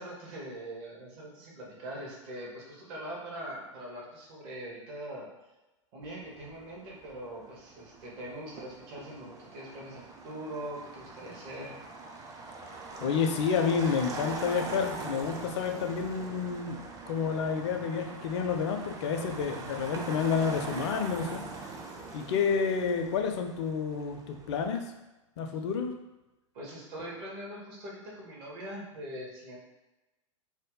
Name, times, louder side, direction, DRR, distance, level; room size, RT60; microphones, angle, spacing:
voice 1, 0.0-5.3 5.9-11.8 26.5-29.6, right 1 dB, 45° right, -3 dB, 1.0 m, -42 dB
Motor vehicle (road), 6.0-24.8, right 3 dB, 20° right, 0.4 m, -43 dB
voice 2, 13.0-21.4 22.1-24.8 25.4-25.9, left 6 dB, 55° left, 5 dB, 0.5 m, -30 dB
2.7 x 2.1 x 3.7 m, 1.0 s
figure-of-eight pair, 95°, 17 cm